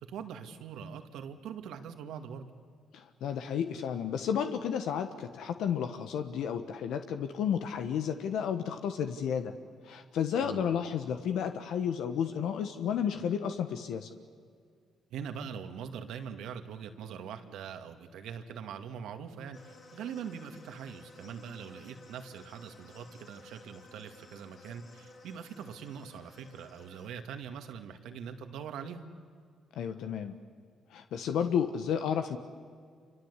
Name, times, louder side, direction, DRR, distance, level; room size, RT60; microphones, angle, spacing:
voice 1, 0.0-2.5 10.4-10.7 15.1-29.0, right 7 dB, 85° right, 6 dB, 2.1 m, -42 dB
voice 2, 2.9-9.5 9.8-14.1 29.7-30.4 30.9-32.4, left 8 dB, 80° left, 8 dB, 1.3 m, -32 dB
sound 1, 19.5-27.1, left 2 dB, 50° left, 4.3 m, -55 dB
27.5 x 25.0 x 8.3 m, 2.1 s
cardioid pair, 90°, 0 cm